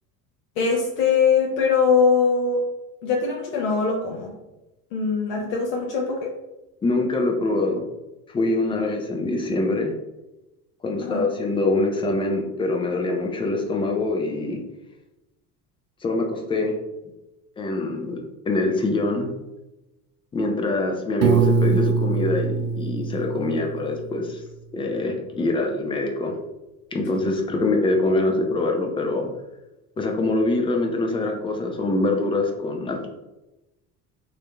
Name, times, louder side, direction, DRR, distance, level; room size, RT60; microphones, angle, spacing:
voice 1, 0.6-2.6 3.0-4.3 4.9-6.3 8.8-8.9 11.0-11.2, left 5 dB, 60° left, 0 dB, 0.6 m, -22 dB
voice 2, 6.8-7.8 8.3-9.9 10.8-14.6 16.0-16.7 17.6-18.2 18.5-19.3 20.3-24.4 24.7-26.3 26.9-29.3 30.0-33.1, left 2 dB, 15° left, 2 dB, 0.3 m, -24 dB
Piano, 21.2-24.1, right 5 dB, 70° right, 0.6 m, -23 dB
3.6 x 2.7 x 2.2 m, 0.98 s
figure-of-eight pair, 60°, 47 cm